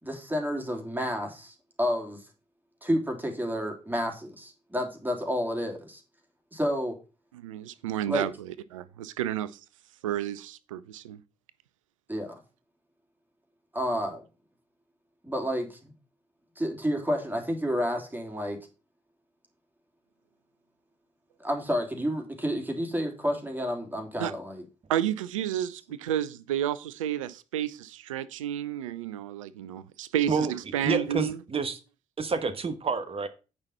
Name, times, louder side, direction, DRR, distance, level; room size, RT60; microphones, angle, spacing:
voice 1, 0.0-2.2 2.8-6.0 6.5-7.0 8.1-8.3 12.1-12.4 13.7-14.2 15.2-15.9 16.6-18.6 21.4-24.6, equal, 10° right, 3.0 m, -30 dB
voice 2, 7.3-9.6 10.0-11.2 24.2-24.3 24.9-31.4, right 11 dB, 85° right, 0.5 m, -31 dB
voice 3, 30.8-31.8 32.2-33.3, right 4 dB, 35° right, 1.2 m, -28 dB
8.8 x 5.5 x 5.5 m
figure-of-eight pair, 40°, 16 cm